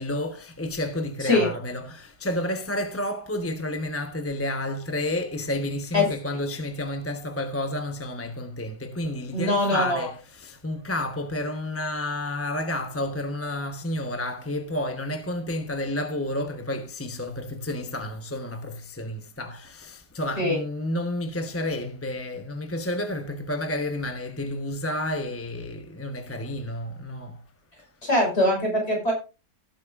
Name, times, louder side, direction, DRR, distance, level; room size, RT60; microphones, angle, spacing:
voice 1, 0.0-27.4, left 1 dB, 10° left, 0.8 m, -30 dB
voice 2, 9.3-10.0 20.4-20.6 28.0-29.1, left 1 dB, 35° left, 6.1 m, -22 dB
16.5 x 8.7 x 2.5 m
omnidirectional pair, 1.8 m